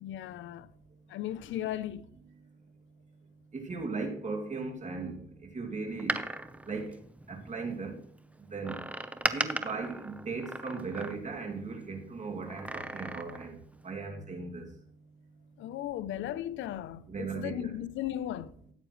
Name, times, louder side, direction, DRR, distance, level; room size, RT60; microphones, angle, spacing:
voice 1, 0.0-0.7 1.1-2.1 15.6-18.5, left 12 dB, 80° left, 0.5 m, -36 dB
voice 2, 3.5-6.2 6.7-7.0 7.3-8.0 8.5-8.8 9.3-13.6 13.8-14.7 17.1-17.7, right 4 dB, 35° right, 2.5 m, -37 dB
Door, 5.9-7.7 8.6-11.5 12.4-13.6 13.9-14.0, right 1 dB, 5° right, 0.8 m, -37 dB
13.5 x 8.9 x 3.1 m
cardioid pair, 90°, 20 cm